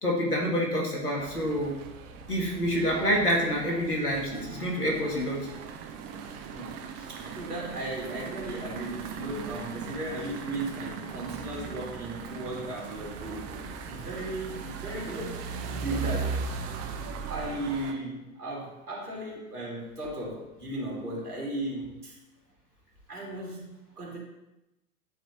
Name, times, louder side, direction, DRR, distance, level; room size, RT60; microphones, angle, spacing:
voice 1, 0.0-1.7 2.3-5.4, equal, 90° left, -2 dB, 1.8 m, -27 dB
sound 1, 1.2-17.9, right 5 dB, 35° right, 0.8 m, -38 dB
voice 2, 6.5-13.5 13.8-16.4 17.3-22.1 23.1-23.7 24.0-24.2, right 1 dB, 85° right, -4 dB, 2.5 m, -36 dB
11.0 x 4.4 x 2.6 m, 0.94 s
figure-of-eight pair, 90°, 45 cm